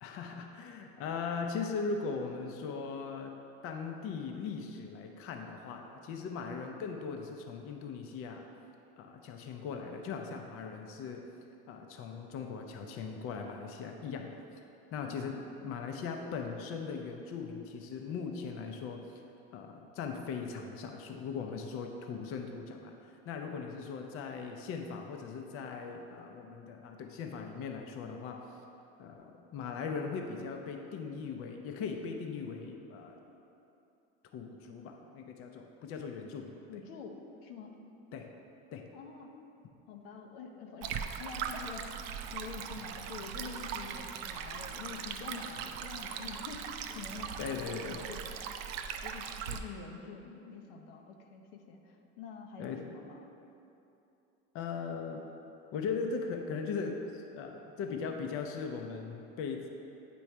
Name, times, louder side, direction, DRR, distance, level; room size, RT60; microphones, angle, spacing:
voice 1, 0.0-3.3 3.6-8.5 9.0-11.2 11.7-14.6 14.9-15.4 15.6-19.2 19.5-28.4 29.0-33.2 34.3-36.6 38.1-38.3 38.7-38.8 47.4-48.1 52.6-52.8 54.5-55.2 55.7-59.7, left 5 dB, 50° left, 3 dB, 0.6 m, -39 dB
voice 2, 15.0-15.5 36.7-37.8 38.9-39.3 39.9-48.5 49.0-53.2, left 5 dB, 85° left, 3 dB, 0.7 m, -47 dB
Stream, 40.8-49.6, right 7 dB, 80° right, 0.5 m, -40 dB
8.5 x 3.1 x 4.5 m, 2.8 s
supercardioid pair, 115°, 29 cm